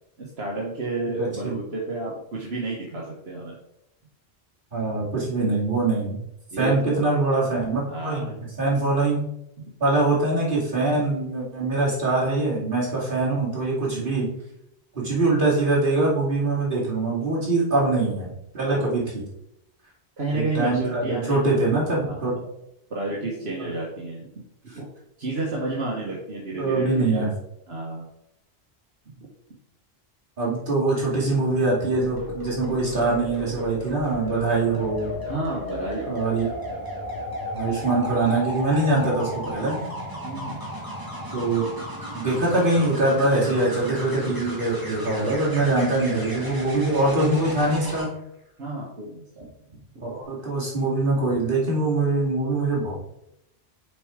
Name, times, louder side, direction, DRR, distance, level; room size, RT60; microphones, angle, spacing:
voice 1, 0.2-3.6 6.5-7.1 7.9-8.4 9.6-9.7 13.9-14.2 18.6-19.0 20.2-21.7 22.0-22.4 22.9-24.3 24.7-24.9 25.2-27.3 27.7-28.1 35.2-36.2 40.2-40.6 48.6-49.5 49.9-50.0, right 2 dB, 75° right, -4 dB, 1.5 m, -31 dB
voice 2, 1.2-1.5 4.7-6.2 6.6-8.3 8.6-9.2 9.8-14.3 14.9-19.2 20.3-22.3 26.6-27.3 30.4-35.1 36.1-36.5 37.5-39.8 41.3-41.7 42.1-48.1 50.0-52.9, right 2 dB, 55° right, -6 dB, 2.7 m, -23 dB
sound 1, 31.9-48.0 50.0-50.2, left 1 dB, 20° right, 1.9 m, -34 dB
6.8 x 4.4 x 5.0 m, 0.81 s
omnidirectional pair, 1.1 m